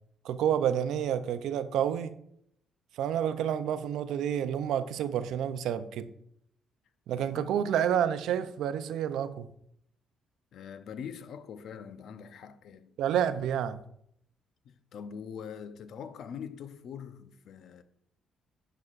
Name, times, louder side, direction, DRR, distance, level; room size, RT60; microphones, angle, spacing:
voice 1, 0.2-2.1 3.0-6.1 7.1-9.5 13.0-13.8, right 9 dB, 85° right, 0.5 m, -29 dB
voice 2, 7.1-7.4 10.5-13.0 14.6-17.8, left 7 dB, 70° left, 0.6 m, -43 dB
10.5 x 5.9 x 2.5 m
cardioid pair, 90°, 0 cm